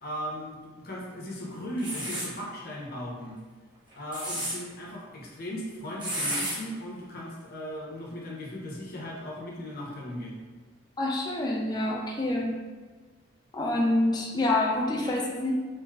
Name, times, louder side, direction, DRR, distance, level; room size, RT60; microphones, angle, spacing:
voice 1, 0.0-3.4 3.9-10.4, equal, 50° left, -4 dB, 0.8 m, -37 dB
sound 1, 1.8-2.3 3.9-4.5 6.0-6.6, right 1 dB, 25° right, 1.0 m, -31 dB
voice 2, 11.0-12.6 13.5-15.5, left 2 dB, 20° left, -3 dB, 0.4 m, -27 dB
4.6 x 2.6 x 2.3 m, 1.4 s
head